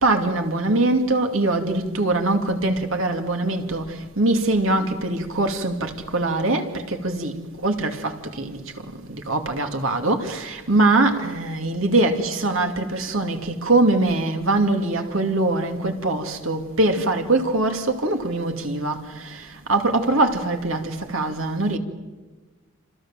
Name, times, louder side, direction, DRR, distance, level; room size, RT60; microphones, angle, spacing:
voice 1, 0.0-7.4 7.6-8.6 9.1-21.8, right 2 dB, 75° right, 2.6 m, -22 dB
28.5 x 27.0 x 7.5 m
head